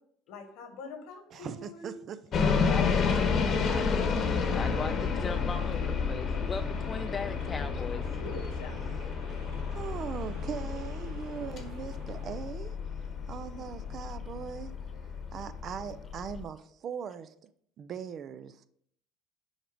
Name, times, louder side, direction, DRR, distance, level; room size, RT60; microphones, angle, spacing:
voice 1, 0.3-2.0 8.1-8.9, left 3 dB, 70° left, 6 dB, 1.5 m, -44 dB
voice 2, 1.3-2.7 9.7-12.8 13.3-14.8 15.3-17.5 17.8-18.7, right 7 dB, 40° right, 13 dB, 0.4 m, -40 dB
sound 1, 2.3-16.4, left 5 dB, 40° left, 1.1 m, -31 dB
voice 3, 3.4-4.1 4.5-8.0, left 4 dB, 20° left, 8 dB, 0.3 m, -38 dB
sound 2, 3.7-12.5, right 4 dB, 70° right, 2.2 m, -52 dB
6.4 x 4.6 x 4.9 m, 0.66 s
cardioid pair, 145°, 0 cm